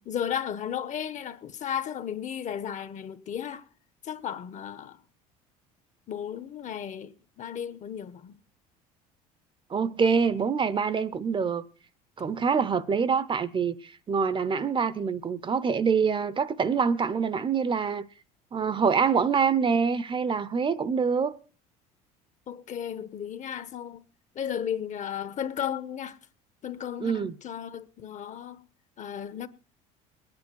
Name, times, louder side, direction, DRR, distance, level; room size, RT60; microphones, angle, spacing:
voice 1, 0.0-3.6 4.0-5.0 6.1-8.4 22.5-24.0 24.3-26.2 26.6-28.6 29.0-29.5, left 9 dB, 45° left, 1.1 m, -34 dB
voice 2, 9.7-11.6 12.2-18.1 18.5-21.4 27.0-27.4, right 6 dB, 30° right, 0.7 m, -25 dB
21.0 x 9.7 x 4.5 m
supercardioid pair, 85°, 17 cm